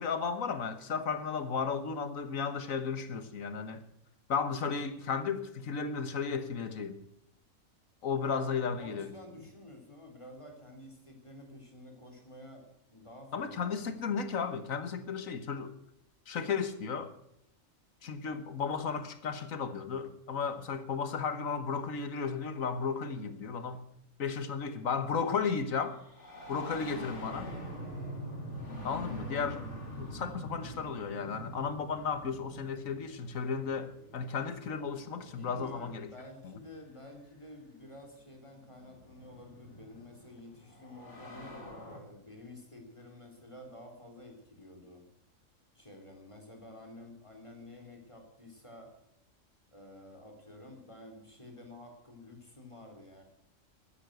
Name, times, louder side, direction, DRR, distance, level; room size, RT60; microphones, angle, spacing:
voice 1, 0.0-3.8 4.3-7.0 8.0-9.1 13.3-15.7 16.3-17.1 18.0-23.8 24.2-26.0 26.5-27.5 28.8-29.7 29.9-36.1 36.4-36.5, left 5 dB, 80° left, 1.7 m, -34 dB
voice 2, 8.3-14.2 35.2-45.1 45.7-48.9 49.7-53.2, left 1 dB, 20° left, 3.5 m, -51 dB
sound 1, 25.3-35.9 37.1-37.2 38.3-42.0, equal, 60° left, 3.1 m, -45 dB
13.0 x 10.5 x 7.9 m
omnidirectional pair, 1.4 m